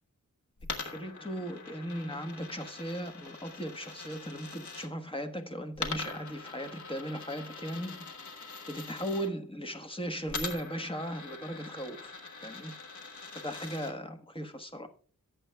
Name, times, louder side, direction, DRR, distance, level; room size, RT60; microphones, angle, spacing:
Coin (dropping), 0.6-4.9 5.7-9.3 10.3-13.9, left 4 dB, 60° left, 1.4 m, -43 dB
voice 1, 0.8-7.9 8.7-12.1 12.4-12.7 13.4-14.9, equal, 15° left, 1.2 m, -37 dB
17.5 x 8.1 x 2.3 m
wide cardioid pair, 105°, 33 cm